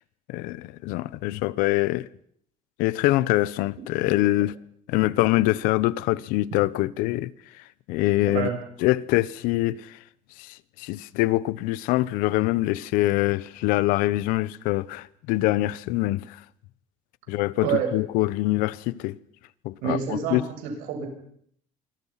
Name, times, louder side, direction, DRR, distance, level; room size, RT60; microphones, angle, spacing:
voice 1, 0.3-2.1 2.8-4.5 4.9-7.3 7.9-8.5 8.8-10.0 10.4-16.4 17.3-19.2 19.6-20.4, left 17 dB, 90° left, 1.0 m, -24 dB
voice 2, 8.2-8.5 17.6-17.9 19.8-21.1, right 7 dB, 85° right, 7.4 m, -27 dB
27.5 x 24.5 x 5.9 m
cardioid pair, 170°, 14 cm